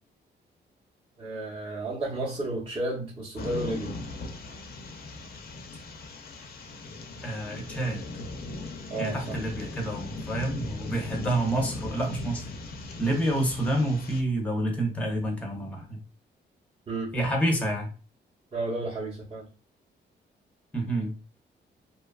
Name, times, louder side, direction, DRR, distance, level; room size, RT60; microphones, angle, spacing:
voice 1, 1.2-3.9 8.9-9.3 16.9-17.1 18.5-19.5, right 2 dB, 30° right, -6 dB, 0.7 m, -32 dB
sound 1, 3.3-14.2, left 2 dB, 60° left, 0.5 m, -39 dB
voice 2, 7.2-8.0 9.0-12.4 13.0-16.0 17.1-17.9 20.7-21.1, right 1 dB, 5° left, 2 dB, 0.6 m, -28 dB
2.7 x 2.3 x 2.2 m, 0.35 s
wide cardioid pair, 155°, 18 cm